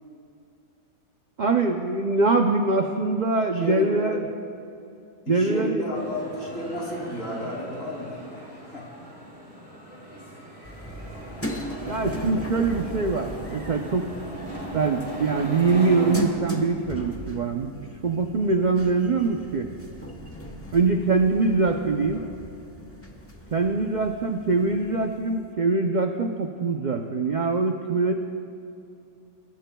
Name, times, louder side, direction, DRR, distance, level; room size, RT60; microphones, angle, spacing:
voice 1, 1.4-4.3 5.3-5.8 11.9-14.1 14.7-17.7 18.0-19.7 20.7-22.2 23.5-28.1, right 3 dB, 65° right, 4 dB, 0.4 m, -23 dB
voice 2, 3.5-4.2 5.3-8.4 8.7-8.9, left 1 dB, 55° left, -3 dB, 3.6 m, -32 dB
sound 1, 5.9-16.2, right 1 dB, 5° right, 3.0 m, -38 dB
sound 2, 10.6-25.4, left 1 dB, 10° left, 0.9 m, -38 dB
22.5 x 18.5 x 2.3 m, 2.6 s
omnidirectional pair, 1.6 m